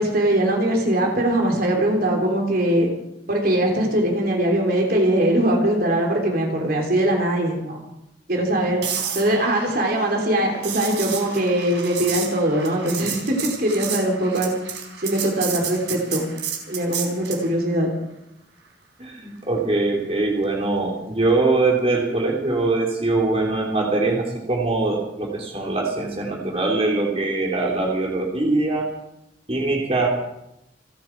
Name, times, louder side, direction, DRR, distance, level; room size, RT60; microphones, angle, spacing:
voice 1, 0.0-2.9 3.3-7.8 8.3-8.8 9.1-14.5 15.0-16.3 16.7-17.9, right 1 dB, 55° right, 1 dB, 3.5 m, -21 dB
sound 1, 8.8-17.5 21.7-21.9, right 8 dB, 75° right, 4.1 m, -31 dB
voice 2, 19.0-28.9 29.5-30.1, right 2 dB, 35° right, -2 dB, 3.4 m, -22 dB
29.5 x 10.5 x 4.7 m, 0.85 s
head